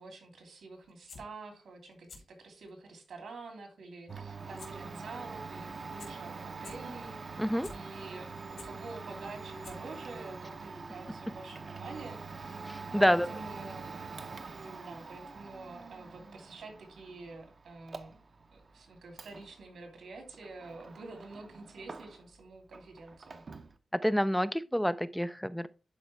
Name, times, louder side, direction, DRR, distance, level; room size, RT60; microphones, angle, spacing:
voice 1, 0.0-12.6 12.9-13.9 14.6-18.2 18.5-23.4, right 3 dB, 85° right, 2.9 m, -48 dB
sound 1, 0.9-1.2 1.9-2.2 2.6-2.7 4.6-4.7 5.0-5.1 5.7-5.8 6.0-6.1 6.5-6.7 7.3-7.7 8.2-8.7 9.3-9.4 9.6-10.0 10.3-10.4, left 4 dB, 75° left, 3.3 m, -49 dB
Domestic sounds home sounds, 4.1-22.4 22.7-23.8, right 4 dB, 40° right, 0.7 m, -45 dB
voice 2, 7.4-7.7 12.7-13.3 24.0-25.7, equal, ahead, 0.3 m, -28 dB
11.0 x 4.8 x 3.3 m
wide cardioid pair, 175°, 0 cm